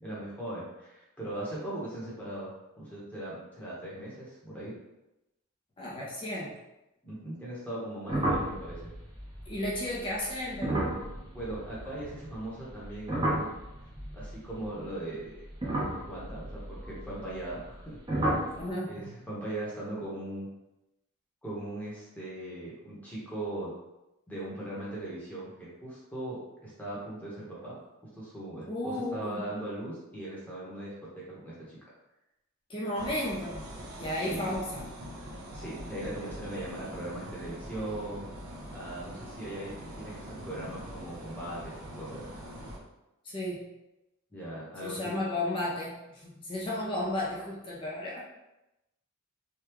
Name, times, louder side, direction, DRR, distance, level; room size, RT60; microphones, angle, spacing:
voice 1, 0.0-2.5 2.8-4.7 7.0-8.9 11.3-13.5 14.1-15.4 16.1-18.3 18.9-20.5 21.4-23.7 24.3-27.7 28.1-31.8 34.2-34.5 35.5-38.3 38.7-42.2 44.3-45.1, right 1 dB, 5° left, -7 dB, 0.9 m, -39 dB
voice 2, 5.8-6.5 9.5-11.0 18.6-19.2 28.7-29.4 32.7-34.9 43.2-43.7 44.8-48.2, left 1 dB, 25° left, -5 dB, 0.5 m, -34 dB
sound 1, 8.1-12.4 12.7-14.9 15.5-17.8 18.1-18.6, right 1 dB, 20° right, 0.7 m, -33 dB
sound 2, 32.9-42.8, equal, 75° right, 0.7 m, -43 dB
3.5 x 2.3 x 3.0 m, 0.95 s
head